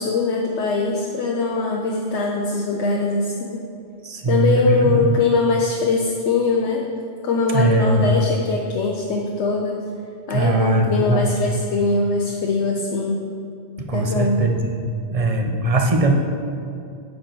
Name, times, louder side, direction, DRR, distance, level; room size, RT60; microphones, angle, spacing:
voice 1, 0.0-3.6 4.3-6.8 7.2-9.8 10.3-13.2 13.9-14.4, left 3 dB, 75° left, -1 dB, 1.1 m, -21 dB
voice 2, 4.0-5.2 7.5-8.1 10.3-11.3 13.9-14.7 15.1-16.1, right 2 dB, 35° right, 3 dB, 0.8 m, -20 dB
9.5 x 4.6 x 6.8 m, 2.5 s
omnidirectional pair, 1.2 m